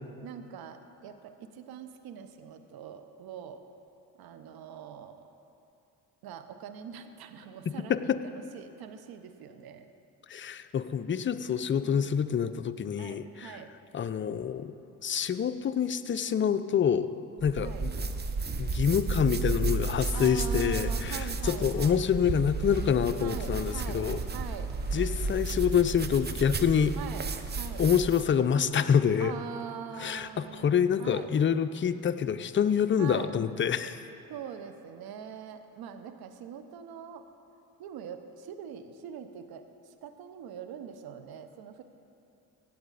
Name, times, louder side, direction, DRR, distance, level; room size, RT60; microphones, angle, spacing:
voice 1, 0.2-3.6 4.2-5.3 6.2-9.9 11.8-12.1 13.0-13.7 17.6-17.9 20.1-22.0 23.2-24.7 27.0-27.9 29.2-31.3 33.0-33.4 34.3-37.2 37.8-41.8, right 8 dB, 60° right, 9 dB, 1.0 m, -43 dB
voice 2, 7.7-8.2 10.3-13.6 13.9-14.7 15.0-17.1 17.4-17.9 18.6-24.2 24.9-27.0 27.8-29.3 30.0-34.0, left 7 dB, 30° left, 11 dB, 0.5 m, -27 dB
sound 1, 17.4-28.3, right 3 dB, 25° right, 0.8 m, -33 dB
sound 2, 19.8-27.2, right 2 dB, 85° right, 1.8 m, -50 dB
16.0 x 8.5 x 4.1 m, 2.8 s
hypercardioid pair, 60°, 42 cm